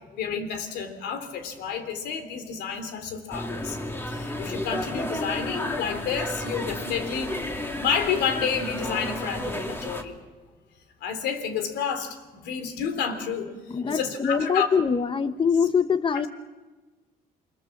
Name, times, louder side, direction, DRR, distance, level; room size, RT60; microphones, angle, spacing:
voice 1, 0.2-3.8 4.1-7.3 7.8-10.2 11.0-14.7, left 6 dB, 80° left, 8 dB, 3.6 m, -30 dB
sound 1, 3.3-10.0, left 1 dB, 15° left, 2.9 m, -32 dB
voice 2, 13.7-16.3, left 6 dB, 30° left, 12 dB, 1.2 m, -23 dB
28.5 x 24.0 x 7.3 m, 1.3 s
cardioid pair, 110°, 17 cm